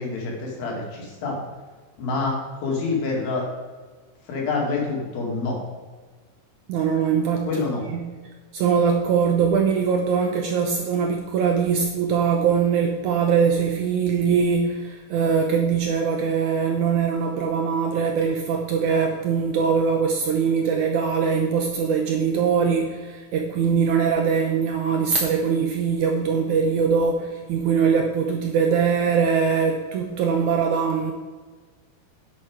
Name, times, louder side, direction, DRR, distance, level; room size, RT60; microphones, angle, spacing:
voice 1, 0.0-1.4 2.0-3.5 4.3-5.6 7.5-7.8, left 3 dB, 70° left, -1 dB, 4.1 m, -27 dB
voice 2, 6.7-7.6 7.9-8.1 8.5-31.1, right 6 dB, 75° right, 3 dB, 1.8 m, -22 dB
10.5 x 8.3 x 4.9 m, 1.4 s
omnidirectional pair, 4.4 m